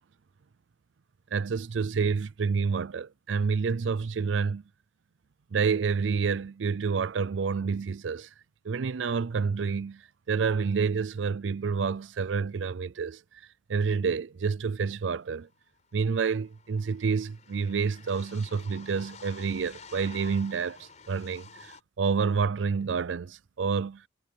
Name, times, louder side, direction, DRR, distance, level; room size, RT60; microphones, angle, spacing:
voice 1, 1.3-4.6 5.5-8.3 8.6-13.2 13.7-15.5 15.9-24.0, right 5 dB, 80° right, 0.5 m, -28 dB
sound 1, 15.3-15.4 15.6-21.8, left 5 dB, 40° left, 4.6 m, -50 dB
head